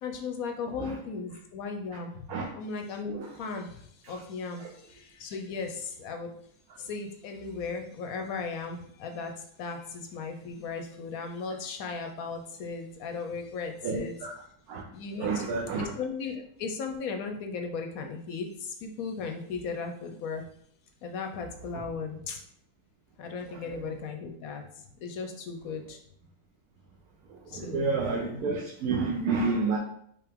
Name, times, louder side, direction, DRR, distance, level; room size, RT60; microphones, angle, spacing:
voice 1, 0.0-6.3 6.8-14.1 14.9-15.5 15.8-20.4 21.0-22.4 23.2-26.0 27.5-27.9, left 4 dB, 70° left, 4 dB, 0.9 m, -36 dB
voice 2, 13.8-14.3 14.7-14.8 15.2-15.9 23.7-23.8 27.5-29.8, right 4 dB, 70° right, -1 dB, 1.1 m, -29 dB
4.9 x 3.0 x 3.5 m, 0.67 s
omnidirectional pair, 1.8 m